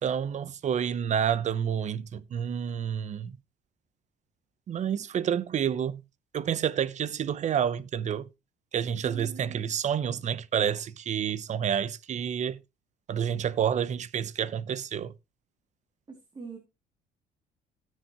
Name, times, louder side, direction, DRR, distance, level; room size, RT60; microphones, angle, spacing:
voice 1, 0.0-3.4 4.7-6.0 6.3-8.3 8.7-12.6 13.1-15.1, right 8 dB, 45° right, 0.8 m, -29 dB
voice 2, 9.0-9.7 16.1-16.6, right 5 dB, 25° right, 2.6 m, -43 dB
17.5 x 6.5 x 3.0 m
cardioid pair, 110°, 17 cm